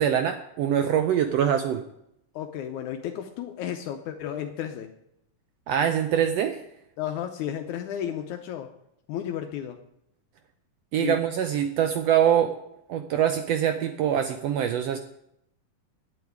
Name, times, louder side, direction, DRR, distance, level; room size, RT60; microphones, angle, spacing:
voice 1, 0.0-1.8 5.7-6.6 10.9-12.6 12.9-15.0, right 9 dB, 75° right, 7 dB, 1.5 m, -24 dB
voice 2, 2.4-4.9 7.0-8.7 9.1-9.8 11.0-11.2, left 10 dB, 80° left, 4 dB, 2.2 m, -33 dB
9.3 x 8.3 x 9.3 m, 0.79 s
omnidirectional pair, 3.5 m